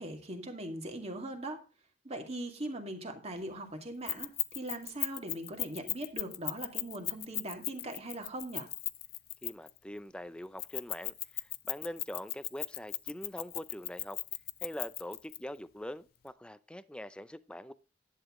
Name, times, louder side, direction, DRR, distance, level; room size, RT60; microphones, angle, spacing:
voice 1, 0.0-1.6 2.0-8.7, right 1 dB, 35° right, 2.2 m, -40 dB
Keys jangling, 4.1-9.8 10.6-15.4, left 17 dB, 55° left, 0.5 m, -36 dB
voice 2, 9.4-14.2 14.6-17.7, left 1 dB, 5° left, 0.5 m, -43 dB
11.0 x 8.4 x 3.7 m
head